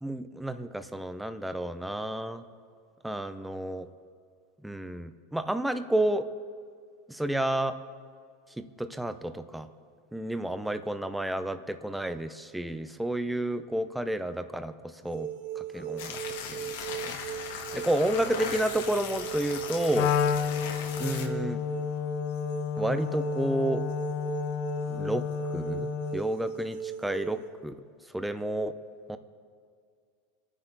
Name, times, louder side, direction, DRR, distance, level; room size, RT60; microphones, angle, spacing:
voice 1, 0.0-2.4 3.0-3.9 4.6-6.3 7.1-7.8 8.6-9.7 10.1-15.3 15.6-16.2 16.5-16.7 17.0-17.1 17.5-20.1 21.0-21.6 22.8-23.8 24.9-25.3 25.5-27.7 28.1-28.7 29.1-29.2, right 1 dB, 5° right, 9 dB, 0.6 m, -31 dB
sound 1, 15.0-27.5, right 10 dB, 80° right, 2.5 m, -39 dB
sound 2, 16.0-21.3, left 6 dB, 80° left, 1.8 m, -38 dB
Wind instrument woodwind instrument, 19.9-26.3, left 9 dB, 45° left, 0.6 m, -31 dB
28.0 x 9.8 x 4.0 m, 2.1 s
supercardioid pair, 155°, 0 cm